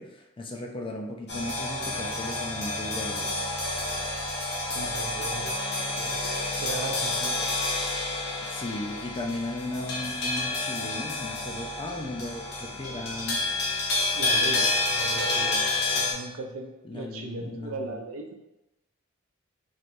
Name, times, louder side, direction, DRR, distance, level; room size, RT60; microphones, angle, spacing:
voice 1, 0.0-3.6 8.5-13.5 16.8-17.9, left 2 dB, 25° left, 2 dB, 0.5 m, -36 dB
sound 1, 1.3-16.1, left 2 dB, 55° left, 1.0 m, -29 dB
voice 2, 4.7-6.1 6.6-7.6 14.1-18.3, right 2 dB, 75° right, 3 dB, 0.6 m, -38 dB
3.2 x 2.7 x 4.3 m, 0.97 s
head